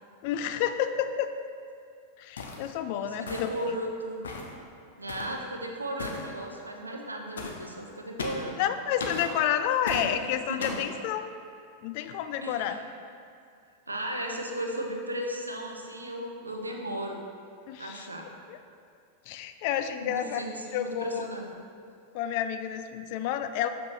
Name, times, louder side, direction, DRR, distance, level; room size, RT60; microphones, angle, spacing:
voice 1, 0.2-1.3 2.2-3.5 8.6-11.3 11.8-12.8 17.7-18.1 18.5-18.6 19.3-20.4 20.7-21.3 22.1-23.7, left 10 dB, 45° left, 9 dB, 0.3 m, -30 dB
sound 1, 2.4-2.7 3.3-3.7 4.2-4.5 5.1-5.4 6.0-6.3 7.4-7.6 8.2-8.5 9.0-9.3 9.9-10.1 10.6-10.9, left 3 dB, 65° left, 0.7 m, -36 dB
voice 2, 2.9-4.2 5.0-8.6 9.9-10.1 10.5-10.8 12.4-12.9 13.9-17.2 17.8-18.3 20.0-21.6, right 1 dB, 80° right, 2 dB, 0.7 m, -36 dB
7.0 x 5.8 x 3.3 m, 2.3 s
figure-of-eight pair, 90°, 0 cm